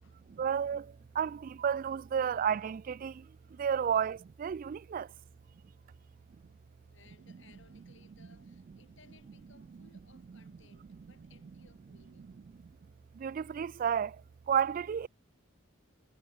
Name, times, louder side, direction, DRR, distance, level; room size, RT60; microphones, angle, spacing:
voice 1, 0.3-5.1 13.1-14.2 14.5-15.1, right 8 dB, 45° right, 0.3 m, -32 dB
voice 2, 6.8-12.4, left 4 dB, 65° left, 4.9 m, -64 dB
head